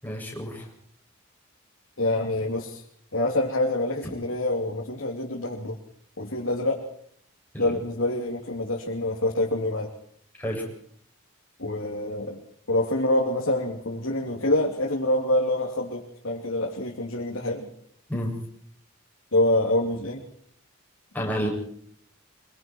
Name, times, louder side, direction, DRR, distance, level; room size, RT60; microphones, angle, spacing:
voice 1, 0.0-0.7 7.5-7.8 10.4-10.7 18.1-18.3 21.1-21.5, equal, 10° left, -1 dB, 7.4 m, -30 dB
voice 2, 2.0-2.8 3.1-5.8 6.2-6.8 7.6-9.9 11.6-12.4 12.7-17.7 19.3-20.2, left 1 dB, 65° left, -1 dB, 3.1 m, -26 dB
25.0 x 24.0 x 4.6 m, 0.62 s
head